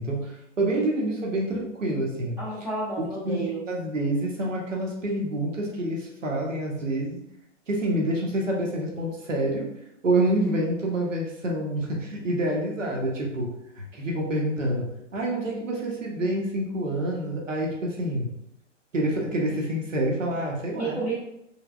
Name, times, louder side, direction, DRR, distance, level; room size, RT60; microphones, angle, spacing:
voice 1, 0.0-2.4 3.2-7.2 7.7-9.7 10.0-18.3 18.9-21.0, right 1 dB, 80° right, -1 dB, 0.8 m, -27 dB
voice 2, 2.4-3.6 20.7-21.1, right 3 dB, 5° right, -11 dB, 0.4 m, -31 dB
3.2 x 2.9 x 2.3 m, 0.80 s
figure-of-eight pair, 120°, 38 cm